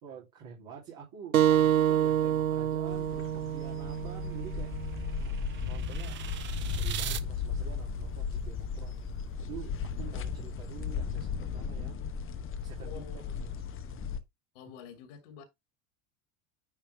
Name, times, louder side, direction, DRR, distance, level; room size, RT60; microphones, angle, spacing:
voice 1, 0.0-4.7 5.2-6.2 6.6-9.0 9.4-12.0 12.6-13.1 13.4-13.5 13.9-14.2, right 7 dB, 55° right, 3.0 m, -48 dB
sound 1, 1.3-6.5, right 10 dB, 90° right, 0.7 m, -28 dB
sound 2, 2.9-14.2, left 6 dB, 30° left, 1.0 m, -36 dB
sound 3, 3.6-7.2, right 10 dB, 30° right, 0.6 m, -41 dB
voice 2, 12.8-13.3 14.5-15.4, left 8 dB, 60° left, 2.2 m, -47 dB
9.6 x 3.4 x 3.4 m
hypercardioid pair, 80°, 42 cm